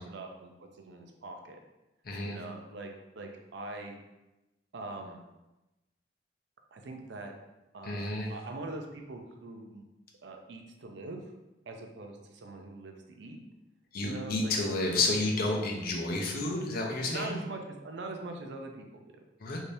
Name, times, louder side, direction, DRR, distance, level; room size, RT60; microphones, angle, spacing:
voice 1, 0.0-1.6 2.2-4.0 4.7-5.2 6.7-7.3 7.7-9.8 10.2-11.2 11.7-13.4 14.0-14.5 17.1-19.2, right 2 dB, 65° right, 3 dB, 0.4 m, -42 dB
voice 2, 2.0-2.4 7.8-8.3 13.9-17.4 19.4-19.6, left 2 dB, 50° left, 0 dB, 0.5 m, -30 dB
3.3 x 2.7 x 2.7 m, 0.98 s
head